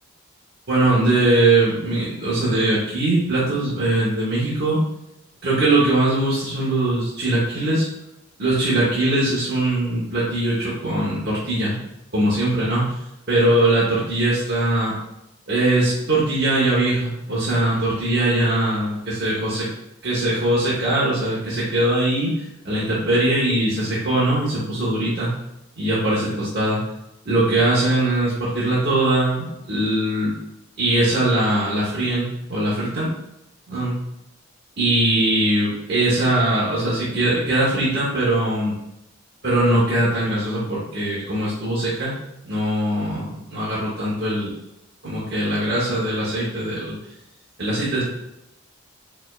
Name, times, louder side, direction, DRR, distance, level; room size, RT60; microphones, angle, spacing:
voice 1, 0.7-4.8 5.4-7.9 8.4-11.8 12.1-13.0 13.3-15.0 15.5-19.7 20.0-25.3 25.8-26.8 27.3-30.3 30.8-33.1 33.7-33.9 34.8-38.7 39.4-42.1 42.4-44.5 45.0-47.0 47.6-48.0, right 1 dB, 50° right, -8 dB, 1.0 m, -21 dB
4.4 x 3.4 x 2.4 m, 0.86 s
head